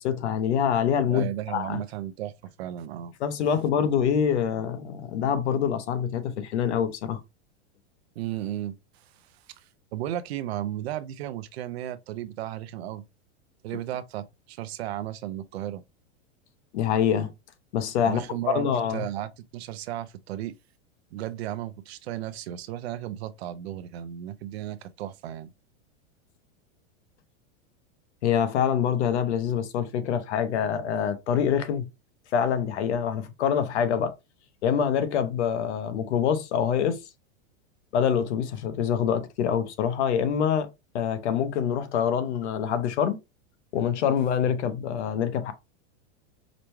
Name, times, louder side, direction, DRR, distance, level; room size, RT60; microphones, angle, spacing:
voice 1, 0.0-1.8 3.2-7.2 16.7-17.3 17.7-18.2 18.5-19.0 28.2-31.9 32.3-34.1 34.6-37.0 37.9-40.7 40.9-43.2 43.7-45.5, left 8 dB, 75° left, 0.9 m, -25 dB
voice 2, 1.1-3.1 8.2-9.3 9.6-13.0 13.6-15.8 18.0-20.6 21.1-25.5, right 12 dB, 60° right, 0.5 m, -34 dB
5.0 x 2.2 x 3.0 m
supercardioid pair, 175°, 35 cm